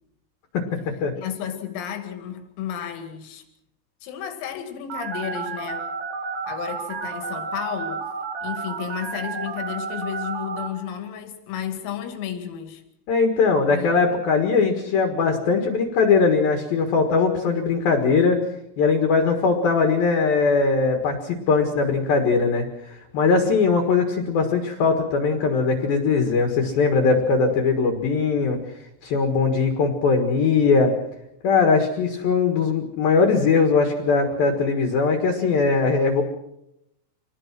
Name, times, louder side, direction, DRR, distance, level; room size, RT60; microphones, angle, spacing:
voice 1, 0.5-1.1 13.1-18.4 18.8-28.6 29.0-30.9 31.4-36.2, left 4 dB, 55° left, 4 dB, 3.0 m, -20 dB
voice 2, 1.2-3.4 4.0-5.9 6.5-8.0 8.4-12.8 13.7-14.0, left 9 dB, 85° left, 7 dB, 5.0 m, -32 dB
Telephone, 4.9-10.7, right 5 dB, 70° right, 5.7 m, -31 dB
26.5 x 20.0 x 6.1 m, 0.83 s
omnidirectional pair, 5.9 m